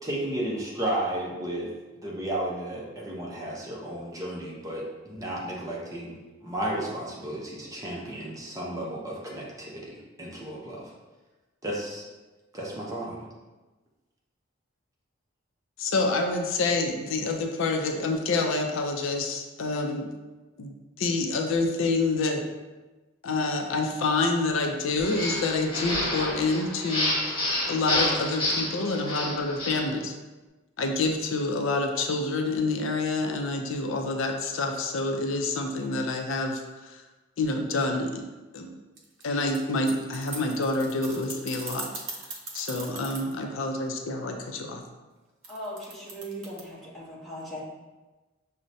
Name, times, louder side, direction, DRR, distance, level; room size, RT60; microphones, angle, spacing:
voice 1, 0.0-1.7 2.0-10.9 11.6-12.0 12.5-13.3, right 1 dB, 15° right, -4 dB, 0.6 m, -33 dB
voice 2, 15.8-20.1 20.6-22.4 23.2-27.4 27.7-30.1 30.8-37.0 37.4-38.2 38.5-38.7 39.2-41.9 42.5-44.8, left 3 dB, 75° left, 3 dB, 0.4 m, -27 dB
sound 1, 25.0-29.9, left 1 dB, 25° left, 1.2 m, -29 dB
sound 2, 39.0-43.3 45.4-46.6, right 3 dB, 70° right, 0.7 m, -39 dB
voice 3, 45.5-47.6, equal, ahead, -8 dB, 0.9 m, -39 dB
6.2 x 2.1 x 2.6 m, 1.2 s
head